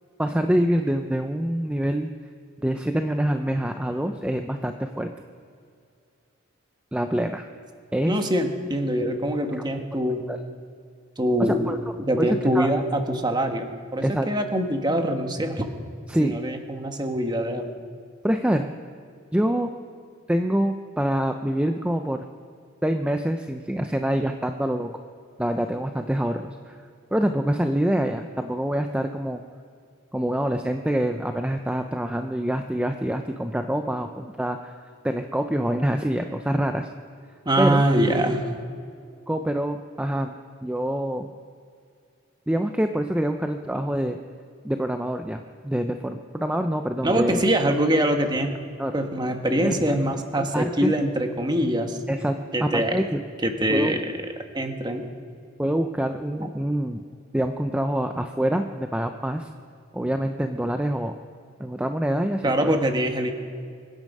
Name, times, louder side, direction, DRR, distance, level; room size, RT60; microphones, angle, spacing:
voice 1, 0.2-2.1 2.6-5.1 6.9-7.5 7.9-8.2 9.6-9.7 10.1-10.4 11.7-11.8 12.2-12.3 12.5-12.7 14.0-14.3 16.1-16.3 18.2-18.7 19.3-19.8 20.3-22.2 22.8-24.9 25.4-26.8 27.1-29.4 30.1-34.8 35.0-36.9 37.6-37.8 39.3-40.3 40.6-41.3 42.5-44.2 44.6-47.4 48.8-49.0 49.6-49.8 50.3-50.9 52.1-53.2 53.7-54.0 55.6-57.0 57.3-59.5 59.9-61.1 61.6-62.8, right 1 dB, 5° right, 6 dB, 0.5 m, -25 dB
voice 2, 8.1-10.2 11.2-15.7 16.2-17.7 37.4-38.4 47.0-48.6 48.9-52.0 52.5-53.0 53.4-54.1 54.5-55.0 56.4-56.5 62.4-63.3, right 1 dB, 20° right, 5 dB, 1.3 m, -24 dB
25.0 x 10.5 x 5.4 m, 2.3 s
head